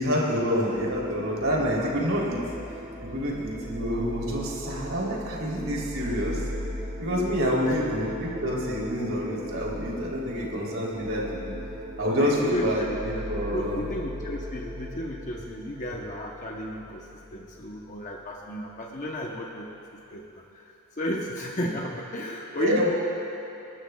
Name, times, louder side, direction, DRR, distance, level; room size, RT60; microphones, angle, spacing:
voice 1, 0.0-2.4 3.1-6.4 7.0-11.5 12.0-13.8 22.6-22.9, equal, 65° right, -4 dB, 3.3 m, -27 dB
sound 1, 0.7-18.3, equal, 30° right, 2.0 m, -38 dB
voice 2, 12.2-12.9 13.1-13.3 13.5-22.9, equal, 35° left, -1 dB, 0.9 m, -34 dB
29.5 x 12.5 x 2.3 m, 2.9 s
head